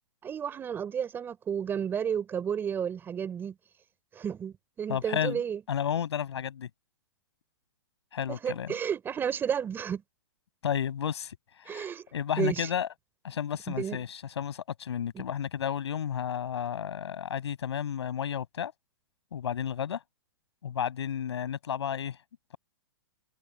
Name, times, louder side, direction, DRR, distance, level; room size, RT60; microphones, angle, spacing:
voice 1, 0.2-3.6 4.1-5.6 8.3-10.0 11.7-12.1 12.4-12.7 13.7-14.0 15.1-15.2, right 8 dB, 15° right, 5.4 m, -32 dB
voice 2, 4.9-5.4 5.7-6.7 8.1-8.7 10.6-11.4 11.6-12.9 13.2-18.7 19.3-20.0 20.6-22.2, left 8 dB, 75° left, 7.0 m, -32 dB
hypercardioid pair, 150°, 14 cm